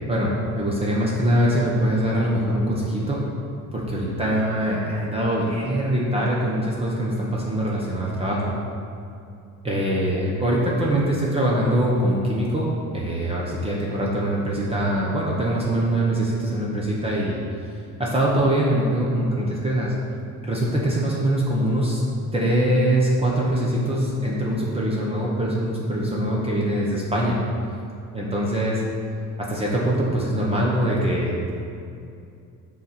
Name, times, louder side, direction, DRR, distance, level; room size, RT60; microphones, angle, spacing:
voice 1, 0.1-3.2 3.7-8.5 9.6-12.7 12.9-17.4 18.0-19.9 20.4-22.0 22.3-27.4 28.1-28.8 29.4-31.5, right 1 dB, 20° right, -4 dB, 0.9 m, -23 dB
7.1 x 4.1 x 5.8 m, 2.5 s
cardioid pair, 145°, 32 cm